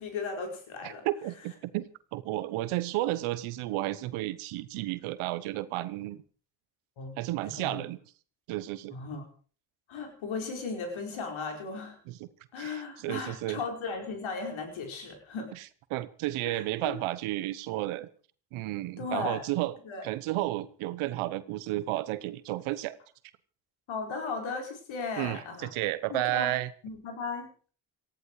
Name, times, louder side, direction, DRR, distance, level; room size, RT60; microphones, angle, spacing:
voice 1, 0.0-1.0 7.0-7.8 8.9-9.2 9.9-12.0 12.5-15.5 16.5-16.9 19.0-19.4 19.8-20.1 23.9-25.7 26.1-26.5 26.8-27.5, left 4 dB, 75° left, 3 dB, 5.3 m, -36 dB
voice 2, 0.8-6.2 7.2-8.0 8.5-8.9 12.1-12.3 12.6-13.6 15.9-18.1 18.5-19.7 20.0-23.0 25.2-26.7, right 16 dB, 90° right, 16 dB, 1.1 m, -32 dB
19.0 x 14.5 x 4.8 m, 0.42 s
supercardioid pair, 50°, 48 cm